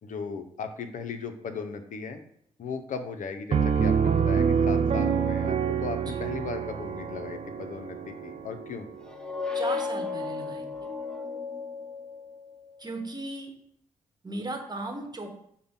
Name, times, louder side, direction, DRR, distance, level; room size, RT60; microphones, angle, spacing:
voice 1, 0.0-2.2 2.6-8.9, left 5 dB, 60° left, 8 dB, 0.6 m, -37 dB
Piano, 3.5-9.0, right 6 dB, 45° right, 0.5 m, -26 dB
sound 1, 9.0-12.6, left 4 dB, 5° left, 0.7 m, -34 dB
voice 2, 9.5-10.6 12.8-13.5 14.2-15.3, right 2 dB, 25° right, 3 dB, 1.1 m, -36 dB
5.1 x 2.2 x 3.6 m, 0.68 s
hypercardioid pair, 40°, 15 cm